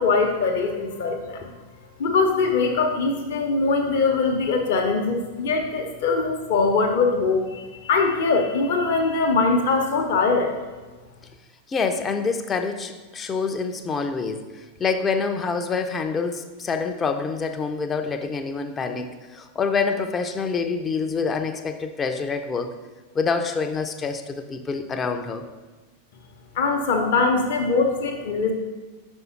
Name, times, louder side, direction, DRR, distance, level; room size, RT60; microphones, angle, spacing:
voice 1, 0.0-1.5 2.0-10.5 26.5-28.5, left 4 dB, 50° left, 2 dB, 0.8 m, -22 dB
voice 2, 11.7-22.7 23.1-25.4, left 5 dB, 20° left, 7 dB, 0.5 m, -26 dB
5.5 x 5.3 x 5.7 m, 1.2 s
figure-of-eight pair, 90°, 0 cm